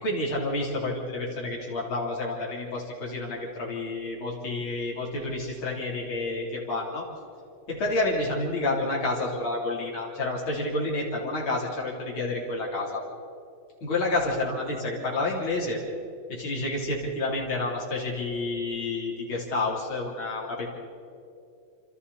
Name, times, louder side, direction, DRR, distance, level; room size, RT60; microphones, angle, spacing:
voice 1, 0.0-7.0 7.7-13.0 13.8-15.8 16.3-20.7, left 2 dB, 70° left, -3 dB, 4.4 m, -29 dB
28.0 x 26.5 x 4.2 m, 2.5 s
omnidirectional pair, 2.3 m